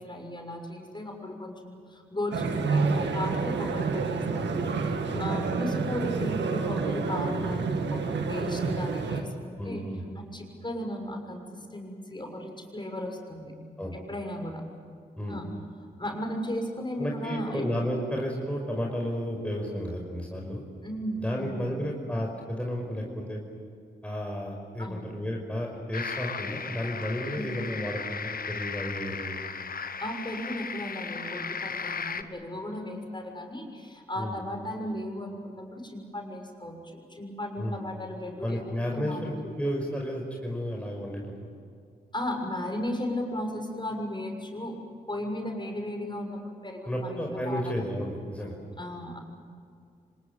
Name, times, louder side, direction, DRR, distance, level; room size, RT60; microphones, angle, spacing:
voice 1, 0.0-9.8 10.1-13.5 13.9-14.6 15.3-15.5 16.0-17.7 20.8-21.9 24.8-25.1 27.3-27.5 30.0-38.6 38.9-39.3 42.1-47.9 48.8-49.2, left 1 dB, 25° left, 2 dB, 6.6 m, -36 dB
sound 1, 2.3-9.2, right 4 dB, 75° right, 2.2 m, -28 dB
voice 2, 9.6-10.0 13.8-14.0 15.2-15.4 17.0-20.6 21.2-23.4 24.0-29.4 34.2-34.4 37.6-37.8 38.4-41.5 46.9-48.5, equal, 5° left, -1 dB, 5.4 m, -32 dB
sound 2, 25.9-32.2, left 5 dB, 55° left, 1.3 m, -36 dB
26.0 x 19.5 x 9.1 m, 2.3 s
supercardioid pair, 40°, 19 cm